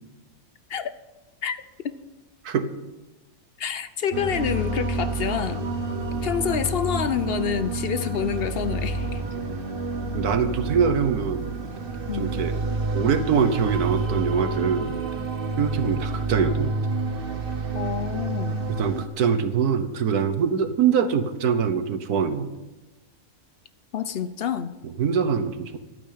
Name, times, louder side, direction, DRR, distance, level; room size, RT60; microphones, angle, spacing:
voice 1, 3.6-5.6 6.2-9.2 12.1-12.3 17.7-18.6 23.9-24.8, left 8 dB, 55° left, 13 dB, 0.7 m, -27 dB
sound 1, 4.1-19.1, right 3 dB, 35° right, 1.4 m, -29 dB
voice 2, 9.3-9.6 10.1-11.5 12.1-12.5 12.9-15.0 15.6-16.7 18.7-22.5 24.8-25.8, right 6 dB, 75° right, 11 dB, 1.5 m, -24 dB
12.5 x 9.4 x 8.6 m, 1.1 s
omnidirectional pair, 1.7 m